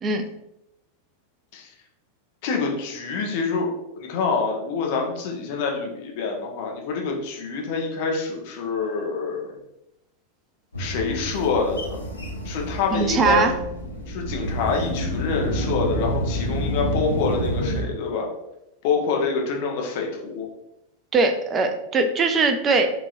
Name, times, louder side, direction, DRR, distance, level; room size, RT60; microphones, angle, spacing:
voice 1, 2.4-3.7 4.0-9.6 10.8-12.0 12.4-13.6 14.1-18.3 18.8-20.5, left 5 dB, 50° left, 0 dB, 1.0 m, -26 dB
sound 1, 10.7-17.8, equal, 80° left, 0.9 m, -28 dB
voice 2, 12.9-13.5 21.1-22.9, right 4 dB, 25° right, 6 dB, 0.5 m, -21 dB
6.1 x 3.1 x 2.5 m, 0.85 s
figure-of-eight pair, 90°, 0 cm